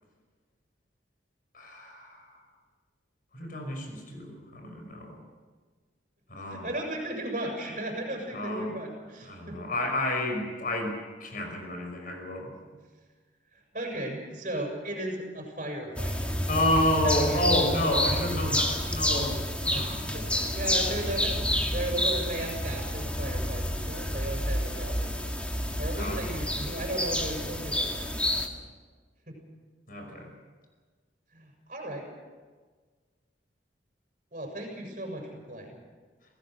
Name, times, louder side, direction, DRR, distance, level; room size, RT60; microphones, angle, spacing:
voice 1, 1.5-2.3 3.3-5.2 6.3-6.7 8.3-8.7 9.2-12.5 16.5-20.1 25.9-26.2 29.9-30.3, left 1 dB, 45° left, 3 dB, 5.6 m, -30 dB
voice 2, 6.5-9.6 12.7-12.8 13.7-16.3 16.9-17.6 19.7-25.3 25.8-28.1 29.3-29.4 31.3-32.1 34.3-35.7, right 1 dB, 40° right, -1 dB, 6.7 m, -35 dB
sound 1, 16.0-28.5, left 1 dB, 5° left, 1.9 m, -29 dB
28.0 x 17.5 x 6.4 m, 1.5 s
head